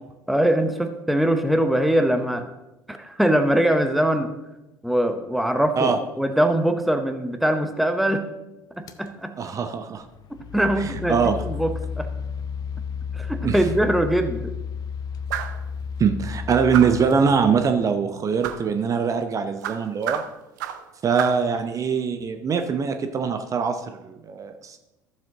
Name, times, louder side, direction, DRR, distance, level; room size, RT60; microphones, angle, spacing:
voice 1, 0.3-2.5 2.9-4.3 4.8-8.2 8.8-9.3 10.3-12.1 13.1-14.5, right 1 dB, ahead, 7 dB, 0.8 m, -22 dB
sound 1, 8.9-9.1 10.0-18.0, left 6 dB, 40° left, 0.7 m, -33 dB
voice 2, 9.4-10.0 10.8-11.4 13.4-13.6 16.0-20.2 21.0-24.8, right 6 dB, 30° right, 7 dB, 0.8 m, -23 dB
sound 2, 15.3-15.6 16.7-17.1 18.4-18.7 19.6-20.9 21.2-21.5, right 10 dB, 65° right, 0.6 m, -30 dB
14.0 x 7.3 x 2.9 m, 0.96 s
figure-of-eight pair, 65°, 10 cm